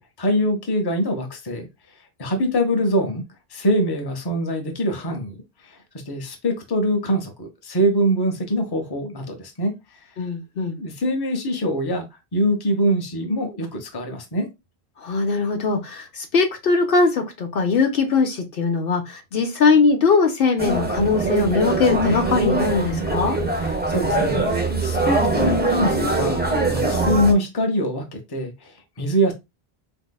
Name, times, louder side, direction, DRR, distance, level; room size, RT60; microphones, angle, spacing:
voice 1, 0.0-1.7 2.2-3.2 3.5-5.4 5.6-10.0 10.8-14.5 23.6-29.3, equal, 25° left, 0.7 m, -24 dB
voice 2, 10.2-10.8 15.0-23.4, left 4 dB, 65° left, 0.8 m, -20 dB
sound 1, 20.6-27.3, right 2 dB, 10° right, 0.5 m, -22 dB
4.1 x 2.7 x 2.2 m
omnidirectional pair, 1.1 m